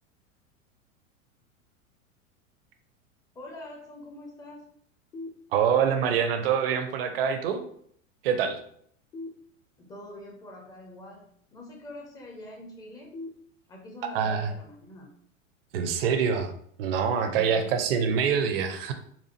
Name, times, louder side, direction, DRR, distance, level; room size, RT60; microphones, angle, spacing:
voice 1, 3.3-4.7 9.8-13.1 13.7-15.1 17.3-17.7, left 1 dB, 10° left, -1 dB, 0.4 m, -44 dB
sound 1, 5.1-6.1 9.1-10.1 13.1-14.1, left 2 dB, 70° left, 0.8 m, -44 dB
voice 2, 5.5-7.6 8.2-8.6 14.1-14.5 15.7-16.5 16.8-18.9, right 7 dB, 45° right, 7 dB, 0.5 m, -25 dB
4.2 x 2.4 x 2.7 m, 0.64 s
figure-of-eight pair, 90°, 41 cm